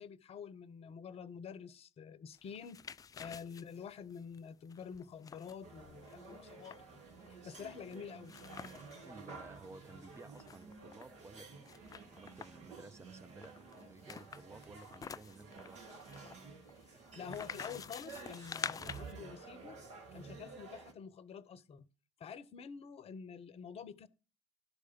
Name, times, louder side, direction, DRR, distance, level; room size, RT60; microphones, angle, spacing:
voice 1, 0.0-2.8 3.2-8.6 16.9-19.8 20.1-21.9 22.2-24.1, left 7 dB, 40° left, 0.9 m, -48 dB
sound 1, 2.4-9.1 9.5-9.6 9.8-11.1 11.6-12.7 13.4-19.1, left 6 dB, 25° left, 0.4 m, -48 dB
sound 2, 5.6-20.9, right 4 dB, 50° right, 2.2 m, -52 dB
voice 2, 9.0-15.8, right 3 dB, 20° right, 0.9 m, -55 dB
12.0 x 4.8 x 5.9 m
figure-of-eight pair, 55°, 15 cm